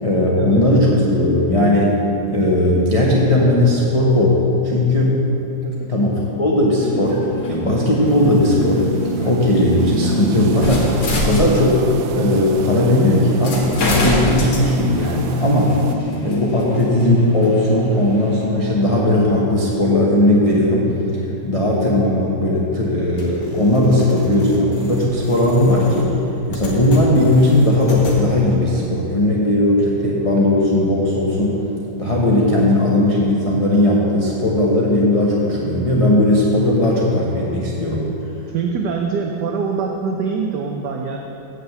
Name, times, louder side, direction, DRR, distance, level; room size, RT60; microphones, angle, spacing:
voice 1, 0.0-2.0 2.3-5.2 5.9-7.2 7.5-11.8 12.1-15.8 16.2-20.9 21.4-26.1 26.5-31.6 32.0-38.1, left 1 dB, 25° left, -5 dB, 0.8 m, -17 dB
sound 1, 6.8-12.0 12.8-12.9 13.4-18.5, equal, 85° left, 2.3 m, -25 dB
sound 2, 8.0-16.0, right 7 dB, 90° right, 1.4 m, -32 dB
sound 3, 23.2-28.2, equal, 65° left, 2.2 m, -34 dB
voice 2, 38.5-41.2, right 5 dB, 70° right, 2 dB, 1.2 m, -24 dB
7.8 x 6.5 x 8.0 m, 3.0 s
omnidirectional pair, 2.1 m